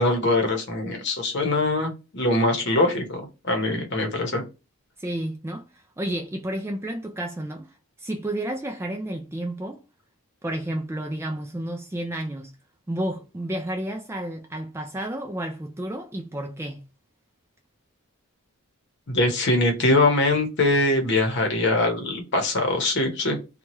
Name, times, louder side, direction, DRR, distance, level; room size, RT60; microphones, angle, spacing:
voice 1, 0.0-4.4 19.1-23.4, left 2 dB, 50° left, 0.8 m, -22 dB
voice 2, 5.0-7.7 8.0-9.8 10.4-12.5 12.9-16.8, right 1 dB, 10° right, 0.3 m, -31 dB
2.8 x 2.3 x 2.9 m
head